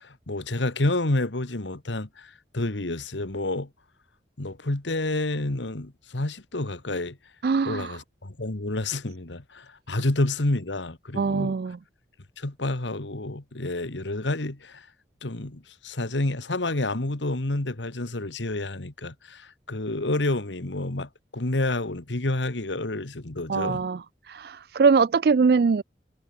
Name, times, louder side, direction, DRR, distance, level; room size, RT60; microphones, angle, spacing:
voice 1, 0.0-3.7 4.4-7.2 7.6-11.5 12.4-14.9 15.2-23.9, left 2 dB, 85° left, 1.7 m, -29 dB
voice 2, 7.4-8.0 11.2-11.8 23.5-24.0 24.3-25.8, right 5 dB, 55° right, 0.4 m, -22 dB
head